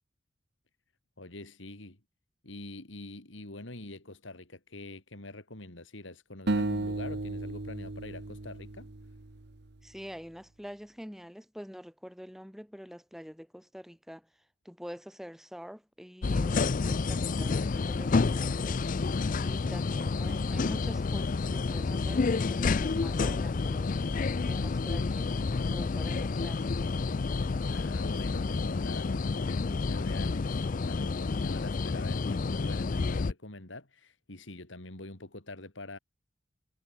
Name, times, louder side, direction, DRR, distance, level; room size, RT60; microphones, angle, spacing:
voice 1, 1.2-2.0 2.4-8.9 27.7-36.0, left 2 dB, 70° left, 3.3 m, -45 dB
sound 1, 6.5-9.7, right 2 dB, 60° right, 1.1 m, -34 dB
voice 2, 9.8-14.3 14.6-18.9 19.4-23.9 24.5-26.7, equal, ahead, 7.5 m, -46 dB
sound 2, 16.2-33.3, left 4 dB, 45° left, 0.5 m, -29 dB
head